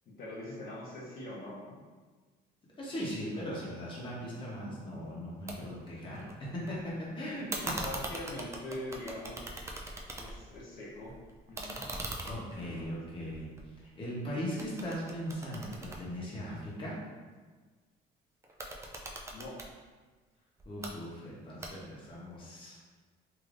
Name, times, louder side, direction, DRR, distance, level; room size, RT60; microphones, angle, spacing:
voice 1, 0.1-1.8 2.9-3.4 5.6-5.8 7.8-9.8 10.1-11.1 11.5-11.9 12.5-12.9 19.3-19.6, left 1 dB, 65° left, -6 dB, 0.8 m, -43 dB
voice 2, 2.8-7.8 12.2-13.5 13.8-17.0 20.7-22.8, equal, 30° left, -5 dB, 0.9 m, -39 dB
sound 1, 5.5-5.6 5.9-6.7 7.5-10.6 10.9-14.2 14.6-16.8 18.4-19.7 20.6-20.9 21.6-22.1, right 1 dB, 15° right, 0.4 m, -41 dB
3.3 x 2.7 x 2.5 m, 1.4 s
cardioid pair, 110°, 17 cm